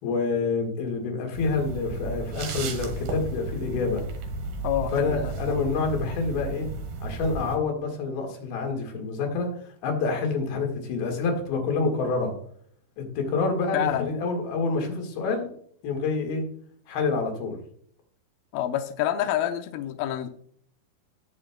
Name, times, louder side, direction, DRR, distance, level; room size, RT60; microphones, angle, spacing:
voice 1, 0.0-4.0 4.9-6.7 7.0-9.5 9.8-12.3 13.0-15.5 15.8-16.4 16.9-17.6, left 4 dB, 60° left, 2 dB, 3.4 m, -27 dB
sound 1, 1.3-7.6, right 3 dB, 65° right, 3.0 m, -33 dB
voice 2, 4.6-5.3 13.7-14.1 18.5-20.3, left 11 dB, 90° left, 7 dB, 2.0 m, -27 dB
18.5 x 6.4 x 2.2 m, 0.62 s
omnidirectional pair, 5.2 m